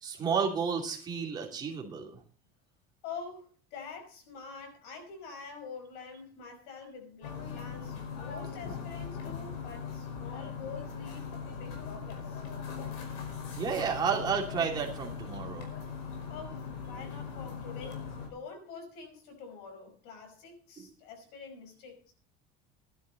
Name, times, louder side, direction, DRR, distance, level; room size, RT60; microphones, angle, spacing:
voice 1, 0.0-2.2 13.5-15.7 20.8-20.9, right 6 dB, 20° right, 2.8 m, -31 dB
voice 2, 3.0-12.4 16.3-22.1, left 5 dB, 60° left, 5.3 m, -46 dB
sound 1, 7.2-18.3, left 6 dB, 80° left, 5.2 m, -40 dB
15.5 x 12.0 x 4.0 m
cardioid pair, 180°, 19 cm